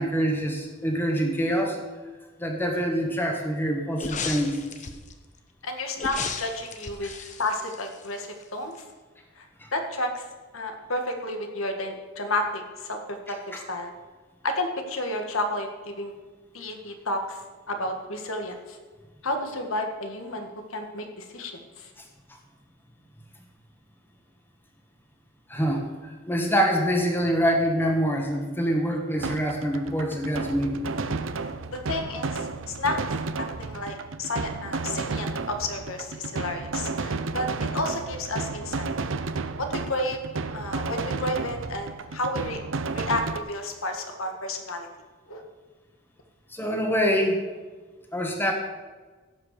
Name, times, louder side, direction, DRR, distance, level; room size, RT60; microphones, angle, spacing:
voice 1, 0.0-1.8 2.4-4.8 7.0-7.1 9.6-9.7 13.5-13.6 25.5-25.8 26.3-30.9 46.5-47.4 48.1-48.5, equal, 10° left, 1 dB, 1.6 m, -25 dB
sound 1, 4.0-5.1 6.0-8.4 8.7-8.8, left 5 dB, 35° left, 1.0 m, -35 dB
voice 2, 5.6-7.1 7.4-8.7 9.4-9.5 9.7-10.3 10.5-13.0 13.3-13.9 14.4-16.1 16.5-17.4 17.7-18.8 19.2-21.9 31.7-33.0 33.6-38.9 39.6-40.2 40.5-42.6 42.9-44.9 45.3-45.4, left 1 dB, 85° left, 4 dB, 1.7 m, -31 dB
sound 2, 29.2-43.4, right 3 dB, 65° right, 0.7 m, -32 dB
17.0 x 5.7 x 6.8 m, 1.3 s
head